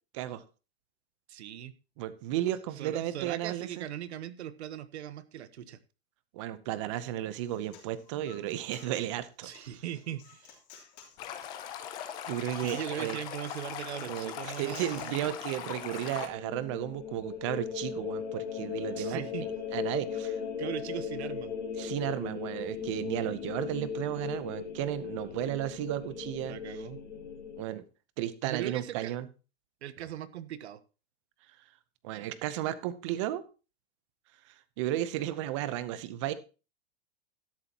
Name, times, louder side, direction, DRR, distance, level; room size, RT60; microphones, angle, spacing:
voice 1, 1.3-1.7 2.8-5.8 9.4-10.6 12.6-15.3 19.0-19.5 20.6-21.5 25.3-25.5 26.4-27.0 28.4-29.2 29.8-30.8, right 11 dB, 75° right, 14 dB, 1.2 m, -39 dB
voice 2, 2.0-3.9 6.3-9.5 12.3-13.2 14.1-20.4 21.8-26.6 27.6-27.8 28.2-29.3 32.0-33.4 34.5-36.3, right 13 dB, 30° right, 15 dB, 0.7 m, -34 dB
Human voice, 7.3-15.2, left 7 dB, 40° left, 3.4 m, -55 dB
Stream, 11.2-16.3, left 9 dB, 15° left, 0.5 m, -40 dB
sound 1, 15.7-27.6, left 7 dB, 80° left, 3.4 m, -38 dB
12.5 x 10.5 x 2.9 m, 0.32 s
supercardioid pair, 175°, 33 cm